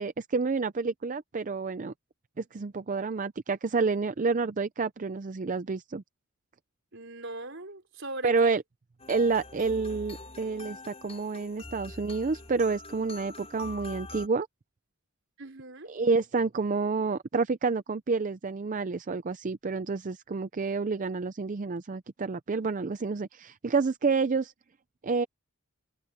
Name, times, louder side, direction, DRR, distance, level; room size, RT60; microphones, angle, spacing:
voice 1, 0.0-1.9 2.4-6.0 8.2-8.6 9.1-14.5 15.9-24.5 25.0-25.3, right 4 dB, 40° right, 0.5 m, -29 dB
voice 2, 6.9-8.6 15.4-15.9, right 2 dB, 60° right, 4.4 m, -40 dB
sound 1, 9.0-14.3, left 2 dB, 30° left, 6.2 m, -44 dB
head